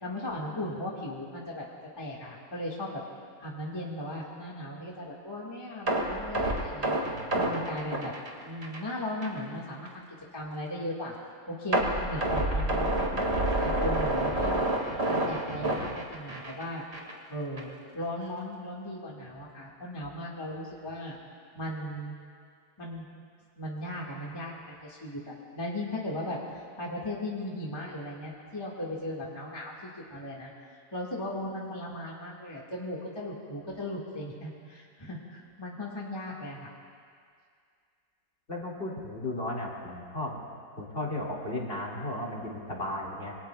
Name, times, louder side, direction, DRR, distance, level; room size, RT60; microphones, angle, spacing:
voice 1, 0.0-1.6 2.0-3.0 3.4-7.0 7.3-8.1 8.4-10.1 10.3-11.1 11.5-14.7 15.1-16.9 17.3-21.2 21.5-22.1 22.8-23.1 23.6-30.5 30.9-36.7, left 1 dB, 15° left, -4 dB, 1.7 m, -37 dB
sound 1, 5.9-8.9 9.2-9.4 9.9-10.0 11.7-16.6 16.9-17.1 17.6-17.7, right 1 dB, 40° right, 2.3 m, -28 dB
voice 2, 38.5-40.4 40.8-43.4, left 1 dB, 35° left, -3 dB, 2.4 m, -35 dB
27.0 x 23.0 x 2.3 m, 2.2 s
omnidirectional pair, 1.7 m